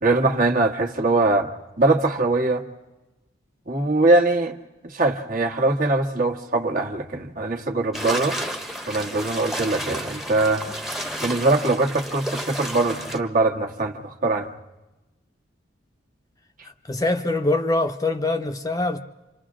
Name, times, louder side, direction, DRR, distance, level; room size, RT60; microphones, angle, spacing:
voice 1, 0.0-1.5 1.8-2.6 3.7-4.6 4.8-8.4 8.9-10.6 11.2-14.5, right 2 dB, 45° right, 1.7 m, -22 dB
sound 1, 7.9-13.2, equal, ahead, 1.1 m, -31 dB
voice 2, 16.6-19.0, left 2 dB, 20° left, 0.8 m, -24 dB
29.5 x 26.5 x 3.7 m
head